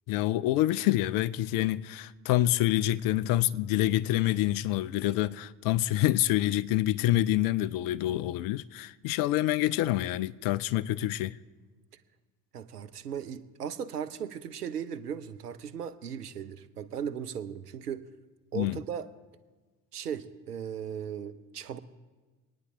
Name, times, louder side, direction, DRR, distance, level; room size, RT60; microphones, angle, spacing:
voice 1, 0.1-11.4 18.5-18.8, left 14 dB, 50° left, 0.6 m, -27 dB
voice 2, 12.5-18.0 18.5-19.1 19.9-21.8, right 8 dB, 85° right, 0.8 m, -37 dB
25.0 x 9.7 x 3.9 m
figure-of-eight pair, 60°, 45 cm